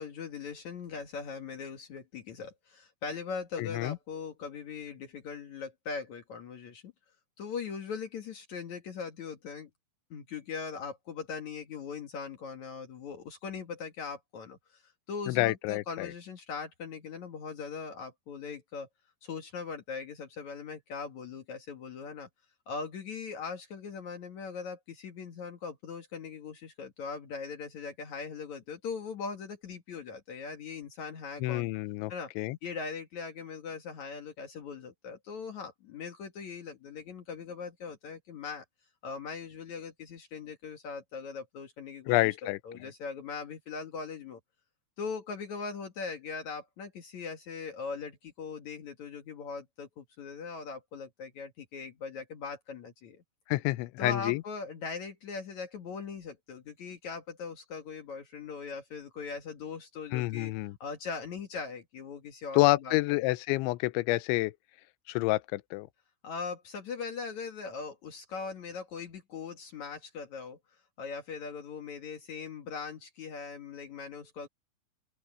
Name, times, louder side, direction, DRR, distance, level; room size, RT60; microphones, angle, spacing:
voice 1, 0.0-6.9 7.4-9.7 10.1-14.8 15.1-18.9 19.2-22.3 22.7-31.7 32.1-32.3 32.6-38.6 39.0-44.4 45.0-53.2 54.0-60.5 60.8-63.0 66.2-70.6 71.0-74.5, left 5 dB, 60° left, 2.1 m, -40 dB
voice 2, 3.6-4.0 15.3-16.1 31.4-32.6 42.1-42.6 53.5-54.4 60.1-60.8 62.5-64.5 65.1-65.9, left 19 dB, 80° left, 3.0 m, -28 dB
open air
omnidirectional pair, 5.7 m